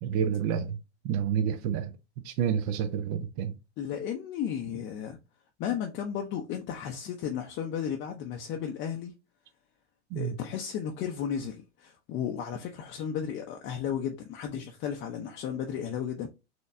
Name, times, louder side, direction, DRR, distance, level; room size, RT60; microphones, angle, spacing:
voice 1, 0.0-0.8 1.0-1.9 2.2-3.5 10.1-10.4, right 8 dB, 45° right, 0.5 m, -29 dB
voice 2, 3.8-5.2 5.6-9.1 10.2-16.3, left 8 dB, 35° left, 0.6 m, -34 dB
4.3 x 3.0 x 2.5 m
hypercardioid pair, 105°, 34 cm